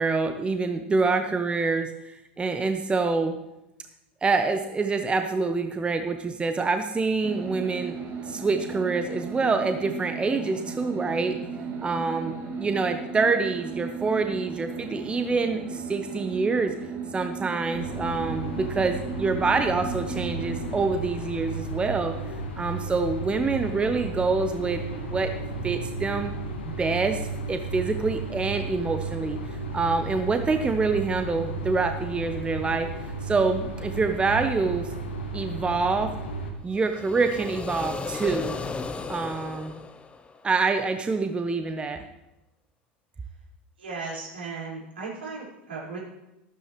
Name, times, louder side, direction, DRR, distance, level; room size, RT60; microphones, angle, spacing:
voice 1, 0.0-3.4 4.2-8.0 8.2-11.4 11.8-16.7 17.1-22.1 22.6-25.3 25.6-26.3 26.6-34.9 35.3-36.1 36.6-38.6 39.1-39.8 40.4-42.0, right 4 dB, 15° right, 7 dB, 1.0 m, -26 dB
sound 1, 7.2-20.9, right 5 dB, 40° right, 2.5 m, -36 dB
sound 2, 17.7-36.5, right 2 dB, 80° left, 1.8 m, -34 dB
sound 3, 36.7-40.7, left 4 dB, 20° left, 0.9 m, -35 dB
voice 2, 43.8-46.0, right 4 dB, 80° right, -5 dB, 5.3 m, -36 dB
13.0 x 13.0 x 3.3 m, 0.93 s
figure-of-eight pair, 80°, 6 cm